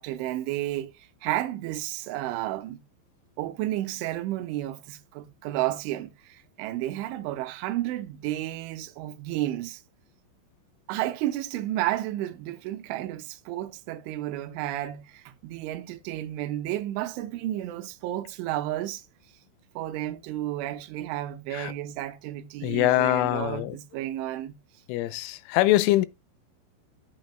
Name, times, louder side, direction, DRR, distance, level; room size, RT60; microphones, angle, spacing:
voice 1, 0.0-2.8 3.4-9.8 10.9-19.0 19.8-24.6, right 14 dB, 85° right, 3.2 m, -32 dB
voice 2, 22.6-23.8 24.9-26.1, left 15 dB, 85° left, 3.2 m, -23 dB
10.5 x 8.7 x 2.3 m
omnidirectional pair, 5.6 m